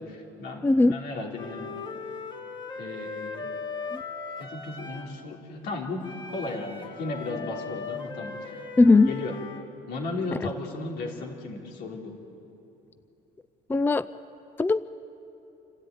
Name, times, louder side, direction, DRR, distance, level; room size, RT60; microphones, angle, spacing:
voice 1, 0.0-1.8 2.8-3.4 4.4-8.6 9.1-9.4 9.9-12.2, left 2 dB, 80° left, 0 dB, 3.5 m, -35 dB
voice 2, 0.6-1.0 3.9-4.0 8.8-9.1 13.7-14.1 14.6-14.9, left 3 dB, 10° left, 15 dB, 0.4 m, -19 dB
Wind instrument woodwind instrument, 1.4-5.2 6.0-9.7, left 4 dB, 30° left, 2.3 m, -38 dB
27.5 x 13.5 x 9.2 m, 3.0 s
cardioid pair, 110°, 17 cm